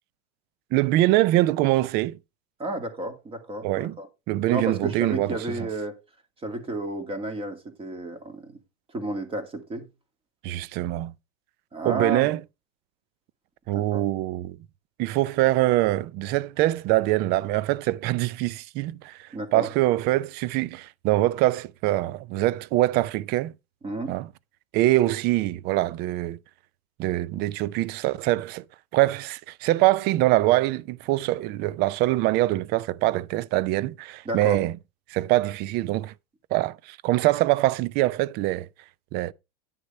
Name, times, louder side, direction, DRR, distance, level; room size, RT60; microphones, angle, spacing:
voice 1, 0.7-2.2 3.6-4.0 4.3-5.4 10.4-11.1 11.8-12.4 13.7-14.6 15.0-23.5 24.1-24.3 24.7-26.4 27.0-28.6 28.9-34.7 35.1-36.1 36.5-38.7 39.1-39.3, right 16 dB, 35° right, 0.4 m, -24 dB
voice 2, 2.6-4.1 4.5-6.0 6.4-8.6 8.9-9.9 11.7-12.3 13.7-14.0 19.3-19.7 23.8-24.2 34.3-34.6, right 2 dB, 20° right, 2.1 m, -32 dB
10.5 x 6.5 x 4.2 m
supercardioid pair, 150°, 30 cm